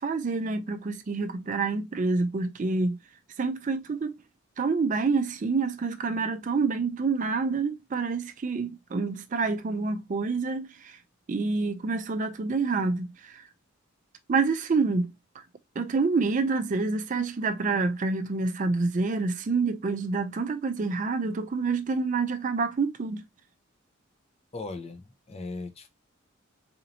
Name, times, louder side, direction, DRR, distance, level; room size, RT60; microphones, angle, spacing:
voice 1, 0.0-3.0 3.4-4.2 4.6-11.0 11.3-13.4 14.3-15.1 15.8-23.2, right 4 dB, 40° right, 0.4 m, -27 dB
voice 2, 24.5-25.9, left 3 dB, 30° left, 0.5 m, -38 dB
4.1 x 2.7 x 2.7 m
head